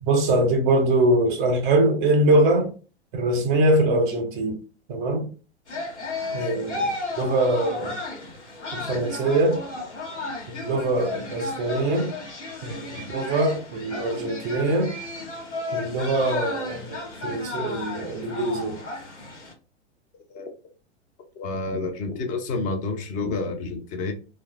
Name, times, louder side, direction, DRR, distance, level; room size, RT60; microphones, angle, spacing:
voice 1, 0.0-2.7 3.1-4.6 4.9-5.2 6.3-8.0 8.7-9.6 10.5-12.1 12.6-15.0 15.7-18.8, right 2 dB, 45° right, 0.6 m, -23 dB
sound 1, 5.7-19.5, left 3 dB, 80° left, 1.0 m, -34 dB
voice 2, 21.4-24.1, left 3 dB, 25° left, 0.5 m, -29 dB
3.0 x 2.1 x 2.3 m
figure-of-eight pair, 95°, 34 cm